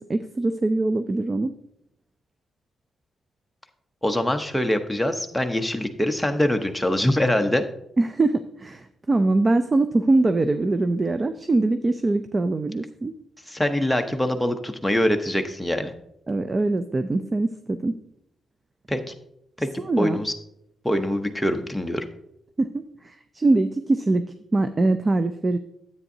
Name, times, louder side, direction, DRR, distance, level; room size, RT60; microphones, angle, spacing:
voice 1, 0.0-1.5 8.0-13.1 16.3-17.9 19.9-20.2 22.6-24.2 24.5-25.6, right 2 dB, 30° right, 10 dB, 0.4 m, -23 dB
voice 2, 4.0-7.6 13.5-15.9 18.9-19.0 19.6-20.3 20.8-22.0, left 1 dB, 5° left, 5 dB, 0.8 m, -24 dB
9.9 x 8.2 x 2.7 m, 0.76 s
cardioid pair, 95°, 0 cm